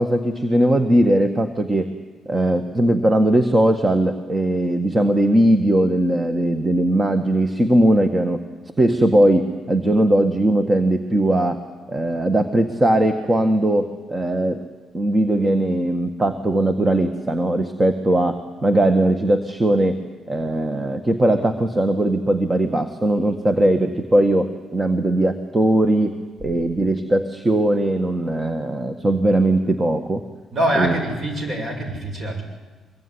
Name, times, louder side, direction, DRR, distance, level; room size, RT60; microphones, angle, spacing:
voice 1, 0.0-1.9 2.3-8.4 8.8-11.6 11.9-14.6 14.9-20.0 20.3-30.2 30.8-30.9, right 1 dB, 25° right, 7 dB, 1.8 m, -19 dB
voice 2, 30.5-32.4, right 1 dB, 40° right, 4 dB, 7.4 m, -24 dB
24.0 x 22.0 x 10.0 m, 1.3 s
cardioid pair, 90°, 0 cm